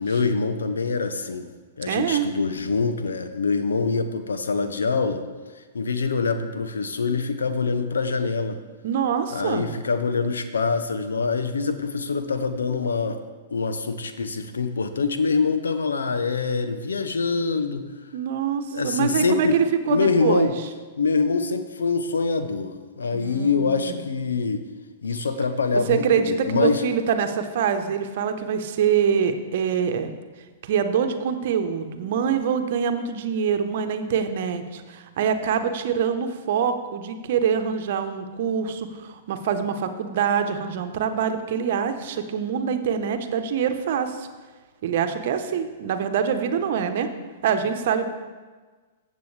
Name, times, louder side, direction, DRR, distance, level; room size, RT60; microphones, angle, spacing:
voice 1, 0.0-1.5 1.8-5.2 5.6-8.6 9.3-13.2 13.5-17.9 18.7-19.6 19.9-20.6 21.0-24.7 25.0-26.8, left 4 dB, 80° left, 9 dB, 0.8 m, -25 dB
voice 2, 1.9-2.3 8.8-9.7 18.1-20.5 23.1-24.0 25.9-30.1 30.6-44.3 44.8-47.1 47.4-48.1, right 7 dB, 60° right, 8 dB, 0.9 m, -25 dB
15.0 x 7.6 x 3.3 m, 1.4 s
hypercardioid pair, 110°, 0 cm